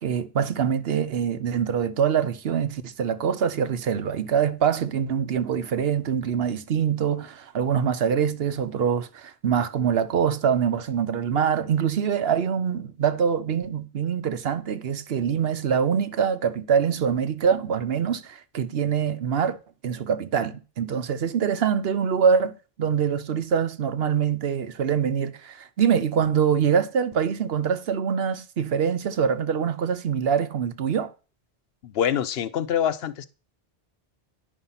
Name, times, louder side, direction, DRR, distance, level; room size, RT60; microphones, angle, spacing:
voice 1, 0.0-19.6 19.8-22.5 22.8-31.1, right 7 dB, 65° right, 1.0 m, -24 dB
voice 2, 31.8-33.3, left 9 dB, 65° left, 0.8 m, -25 dB
10.0 x 5.3 x 5.7 m
omnidirectional pair, 1.1 m